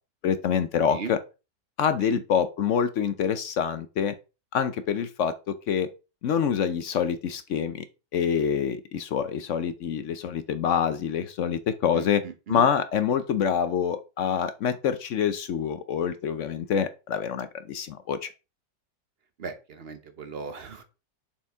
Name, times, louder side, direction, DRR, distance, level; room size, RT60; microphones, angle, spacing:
voice 1, 0.2-1.2 1.8-4.1 4.5-5.9 6.2-7.8 8.1-12.2 12.5-18.3, left 7 dB, 65° left, 11 dB, 0.8 m, -26 dB
voice 2, 11.9-12.7 19.4-20.8, right 5 dB, 45° right, 8 dB, 0.9 m, -38 dB
7.1 x 4.5 x 3.5 m, 0.30 s
omnidirectional pair, 1.8 m